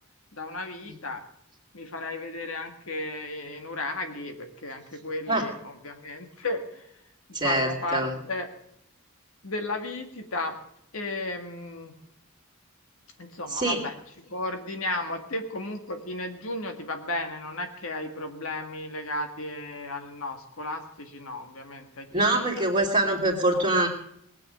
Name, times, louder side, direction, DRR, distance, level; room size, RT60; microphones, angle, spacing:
voice 1, 0.3-1.2 1.7-6.9 7.3-8.5 9.4-10.6 10.9-11.9 13.2-13.9 14.2-22.7 23.0-23.6, left 2 dB, 80° left, 5 dB, 1.9 m, -34 dB
voice 2, 7.3-8.1 13.5-13.8 22.1-23.9, right 2 dB, 30° right, -5 dB, 2.7 m, -24 dB
19.5 x 8.3 x 7.7 m, 0.74 s
head